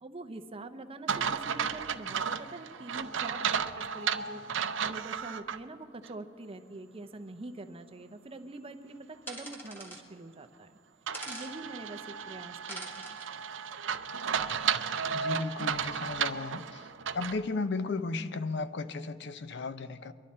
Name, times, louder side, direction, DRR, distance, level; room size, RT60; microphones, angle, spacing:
voice 1, 0.0-4.4 4.8-10.8 11.3-13.2, right 2 dB, 30° right, 9 dB, 0.7 m, -45 dB
sound 1, 1.1-5.6 6.0-6.1 11.1-17.4, right 7 dB, 70° right, 0.5 m, -33 dB
sound 2, 9.3-10.0 11.1-11.5 12.7-13.3, right 1 dB, 10° left, 1.7 m, -43 dB
voice 2, 15.1-16.9 17.1-20.1, left 3 dB, 60° left, 12 dB, 0.6 m, -35 dB
23.0 x 12.0 x 4.3 m, 2.1 s
head